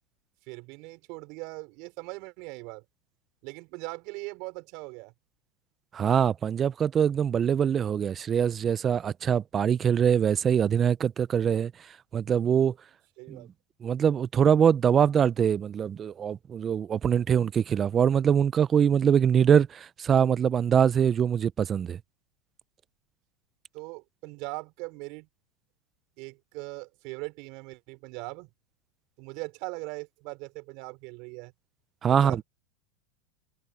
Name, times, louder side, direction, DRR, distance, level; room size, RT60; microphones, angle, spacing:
voice 1, 0.5-2.8 3.4-5.1 13.2-13.5 23.7-25.3 26.2-28.5 29.2-31.5 32.0-32.4, right 27 dB, 55° right, 5.2 m, -40 dB
voice 2, 5.9-11.7 12.1-12.7 13.3-13.4 13.8-22.0 32.0-32.4, right 8 dB, 25° right, 0.4 m, -23 dB
supercardioid pair, 135°, 0 cm